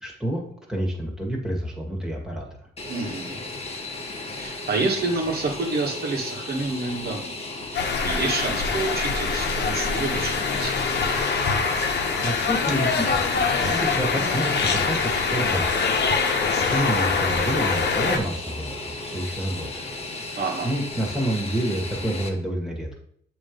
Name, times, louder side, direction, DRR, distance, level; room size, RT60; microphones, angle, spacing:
voice 1, 0.0-2.5 12.2-15.7 16.1-19.9 20.6-23.0, right 1 dB, 5° right, -1 dB, 1.8 m, -29 dB
Fixed-wing aircraft airplane, 2.8-22.3, left 2 dB, 30° left, 1.2 m, -35 dB
voice 2, 2.9-3.4 4.3-7.4 7.7-10.7 20.4-20.7, right 3 dB, 55° right, -1 dB, 1.5 m, -28 dB
sound 1, 7.7-18.2, left 5 dB, 60° left, 1.0 m, -24 dB
7.2 x 3.1 x 5.2 m, 0.67 s
cardioid pair, 90°, 20 cm